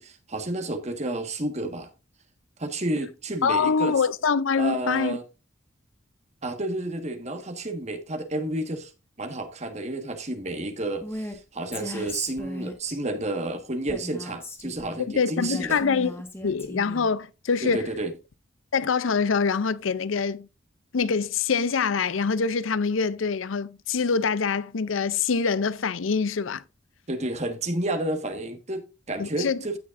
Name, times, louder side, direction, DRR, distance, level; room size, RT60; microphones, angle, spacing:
voice 1, 0.0-1.9 2.6-4.0 4.6-5.2 6.4-8.9 9.2-15.8 17.6-18.1 27.1-29.8, right 1 dB, 35° right, 1.6 m, -31 dB
voice 2, 3.4-5.2 15.2-16.2 16.4-17.9 18.7-20.5 20.9-26.6 29.2-29.6, left 5 dB, 80° left, 0.5 m, -24 dB
Female speech woman speaking, 11.0-11.4 11.7-13.0 13.9-15.0 15.5-17.1, left 1 dB, 10° left, 1.5 m, -37 dB
15.5 x 6.3 x 2.6 m
head